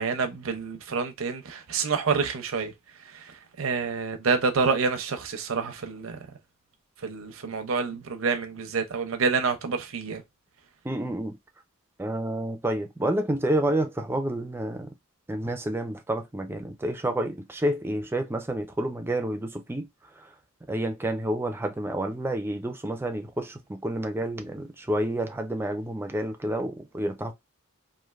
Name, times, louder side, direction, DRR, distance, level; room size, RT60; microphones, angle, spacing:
voice 1, 0.0-2.7 3.0-6.3 7.0-10.2, right 5 dB, 75° right, 0.6 m, -28 dB
voice 2, 10.8-11.4 12.0-14.9 15.3-19.9 20.2-20.3 20.7-27.3, right 1 dB, 10° right, 0.4 m, -29 dB
3.1 x 2.5 x 2.4 m
head